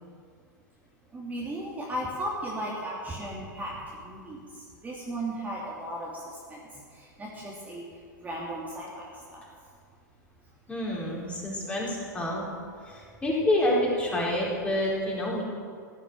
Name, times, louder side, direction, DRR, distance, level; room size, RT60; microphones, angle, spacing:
voice 1, 1.1-3.7 4.0-4.4 4.8-6.2 6.5-6.6 7.2-7.8 8.2-8.9 9.3-9.4, right 1 dB, 15° right, -5 dB, 2.8 m, -35 dB
voice 2, 10.7-12.5 12.9-15.4, left 1 dB, 10° left, -4 dB, 4.4 m, -28 dB
16.0 x 11.0 x 6.4 m, 2.2 s
figure-of-eight pair, 100°, 10 cm